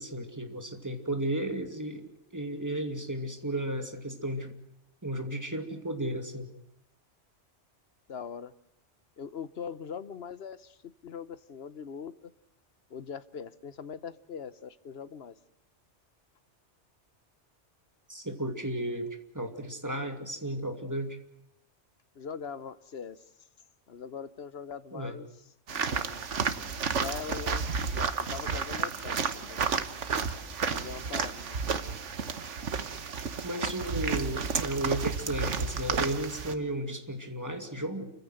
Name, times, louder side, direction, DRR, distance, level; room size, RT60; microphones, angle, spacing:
voice 1, 0.0-4.6 5.0-6.5 18.1-19.1 19.3-21.2 24.9-25.2 33.4-38.1, right 1 dB, 15° right, 5 dB, 2.5 m, -34 dB
voice 2, 8.1-8.5 9.2-12.1 12.9-15.3 22.1-23.3 23.9-25.3 25.7-26.3 26.9-29.6 30.6-31.8, left 6 dB, 60° left, 14 dB, 1.2 m, -41 dB
sound 1, 25.7-36.5, right 5 dB, 80° right, 1.6 m, -32 dB
29.0 x 15.5 x 7.9 m, 0.81 s
omnidirectional pair, 1.2 m